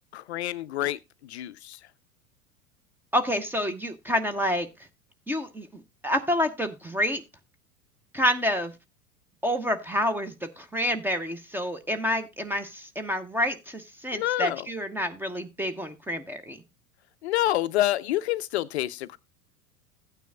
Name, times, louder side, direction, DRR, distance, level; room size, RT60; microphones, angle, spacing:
voice 1, 0.1-1.0 1.3-1.8 14.1-14.7 17.2-19.2, left 14 dB, 50° left, 0.5 m, -27 dB
voice 2, 3.1-4.7 5.3-7.2 8.1-8.7 9.4-16.6, equal, 5° right, 0.6 m, -28 dB
15.0 x 9.2 x 2.2 m
figure-of-eight pair, 85°, 44 cm